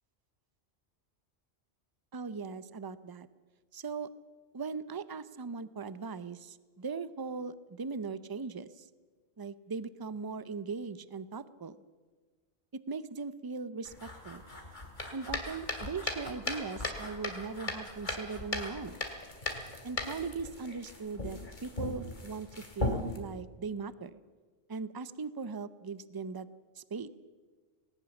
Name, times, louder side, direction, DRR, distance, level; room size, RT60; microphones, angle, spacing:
voice 1, 2.1-3.3 3.7-4.1 4.5-8.7 9.4-11.8 12.7-13.9 14.2-14.4 15.1-19.0 19.8-22.5 22.8-24.2 24.7-26.5 26.8-27.1, right 4 dB, 25° right, 15 dB, 0.6 m, -39 dB
sound 1, 13.9-23.2, left 2 dB, 45° left, 2.6 m, -38 dB
19.5 x 19.0 x 7.1 m, 1.4 s
omnidirectional pair, 1.1 m